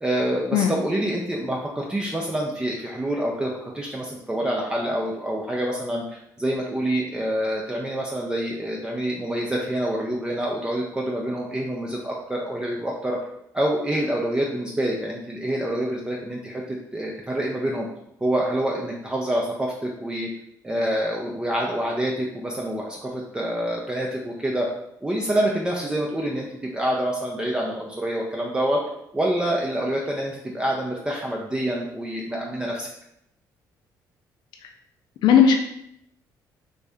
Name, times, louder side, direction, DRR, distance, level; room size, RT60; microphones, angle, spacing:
voice 1, 0.0-6.0 6.4-13.2 13.5-17.9 18.2-20.3 20.6-24.7 25.0-28.8 29.1-32.9, right 1 dB, 10° right, -2 dB, 0.4 m, -26 dB
voice 2, 35.2-35.6, left 7 dB, 75° left, 4 dB, 0.4 m, -16 dB
3.3 x 2.6 x 3.4 m, 0.77 s
cardioid pair, 120°, 7 cm